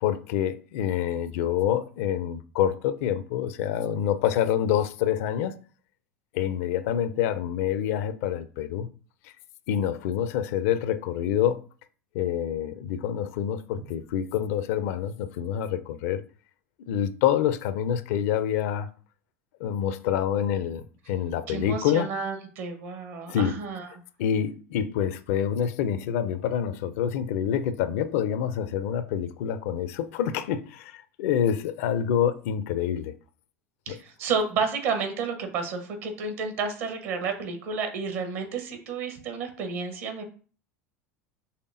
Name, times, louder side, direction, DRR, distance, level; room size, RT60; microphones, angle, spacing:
voice 1, 0.0-5.5 6.3-8.9 9.7-11.6 12.1-16.2 16.9-18.9 19.6-22.1 23.3-23.6 24.2-33.1 33.9-34.0, left 9 dB, 60° left, 0.4 m, -27 dB
voice 2, 21.5-23.9 33.9-40.2, right 5 dB, 60° right, 1.1 m, -31 dB
5.7 x 3.3 x 2.6 m
figure-of-eight pair, 80°, 9 cm